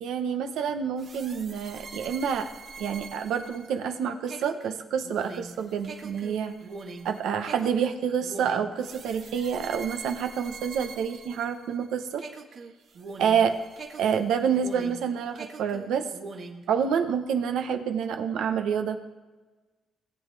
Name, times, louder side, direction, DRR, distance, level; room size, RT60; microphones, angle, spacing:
voice 1, 0.0-2.5 2.8-6.5 7.0-12.2 13.2-13.5 14.0-16.1 16.7-19.0, right 7 dB, 80° right, 7 dB, 0.9 m, -28 dB
sound 1, 1.0-11.9 12.2-15.1 15.4-16.7, right 4 dB, 55° right, 1.4 m, -43 dB
19.5 x 7.7 x 3.3 m, 1.3 s
cardioid pair, 90°, 0 cm